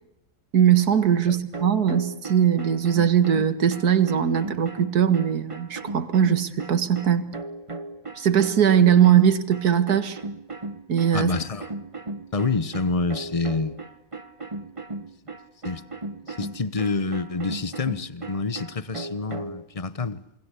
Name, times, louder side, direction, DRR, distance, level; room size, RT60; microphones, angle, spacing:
voice 1, 0.5-7.3 8.2-10.2 10.9-11.3, right 9 dB, 70° right, 2.3 m, -20 dB
sound 1, 1.5-19.7, right 2 dB, 20° right, 1.4 m, -36 dB
voice 2, 11.1-11.7 12.3-13.8 15.6-15.8 16.3-20.2, left 4 dB, 25° left, 1.0 m, -27 dB
28.0 x 22.5 x 8.4 m
omnidirectional pair, 1.7 m